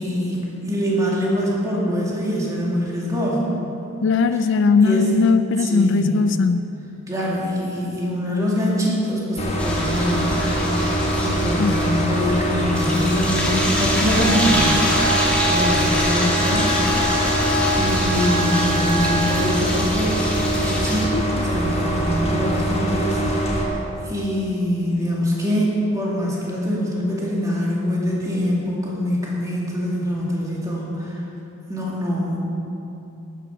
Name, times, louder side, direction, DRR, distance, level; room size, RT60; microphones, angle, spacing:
voice 1, 0.0-3.5 4.8-5.1 5.6-6.3 7.1-10.4 10.7-10.8 11.1-16.8 17.7-20.2 20.5-21.1 21.4-31.2 31.7-32.4, equal, 15° right, -5 dB, 2.3 m, -24 dB
voice 2, 4.0-6.6 11.6-11.8 21.1-21.5, left 4 dB, 55° left, 11 dB, 0.3 m, -19 dB
sound 1, 9.4-23.7, right 1 dB, 30° left, 1.4 m, -23 dB
sound 2, 9.6-21.0, left 1 dB, 5° left, 1.7 m, -26 dB
Wind instrument woodwind instrument, 14.1-19.4, right 1 dB, 85° right, 2.7 m, -27 dB
12.0 x 9.2 x 5.8 m, 3.0 s
head